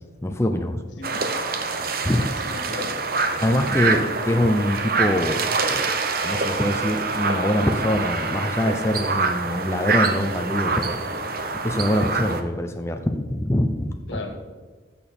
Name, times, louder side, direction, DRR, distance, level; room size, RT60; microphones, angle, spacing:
voice 1, 0.2-0.8 1.8-2.3 3.4-6.0 6.2-11.0 11.6-14.2, left 1 dB, 15° left, 5 dB, 0.5 m, -24 dB
sound 1, 1.0-12.4, right 4 dB, 50° right, 0.9 m, -25 dB
voice 2, 2.4-3.0 3.5-4.0 14.1-14.4, left 2 dB, 80° left, 4 dB, 1.9 m, -36 dB
14.0 x 7.0 x 4.3 m, 1.4 s
head